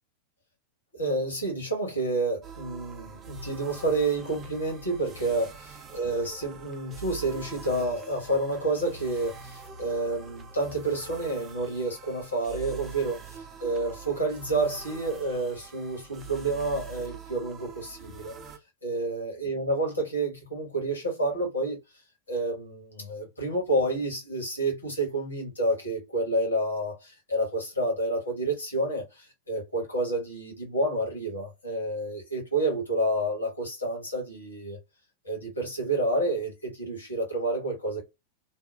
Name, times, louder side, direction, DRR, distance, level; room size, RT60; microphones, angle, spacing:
voice 1, 0.9-5.5 5.9-18.3 18.8-21.8 22.3-34.8 35.2-38.0, right 2 dB, 80° left, 1.2 m, -29 dB
sound 1, 2.4-18.6, right 6 dB, 25° right, 0.5 m, -44 dB
2.8 x 2.1 x 2.3 m
figure-of-eight pair, 90°, 0 cm